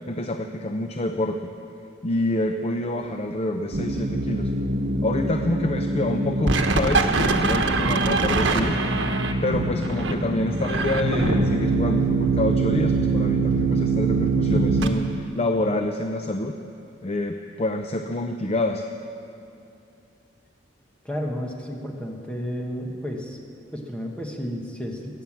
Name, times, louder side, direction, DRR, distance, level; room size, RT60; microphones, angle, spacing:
voice 1, 0.1-1.5 2.0-4.5 5.0-8.8 9.4-16.6 17.0-18.8, left 1 dB, 35° left, 5 dB, 0.6 m, -27 dB
sound 1, 3.7-14.9, right 3 dB, 85° right, 1.2 m, -23 dB
voice 2, 21.0-23.4 23.7-25.2, equal, 5° left, 0 dB, 1.3 m, -32 dB
21.5 x 9.2 x 7.3 m, 2.6 s
head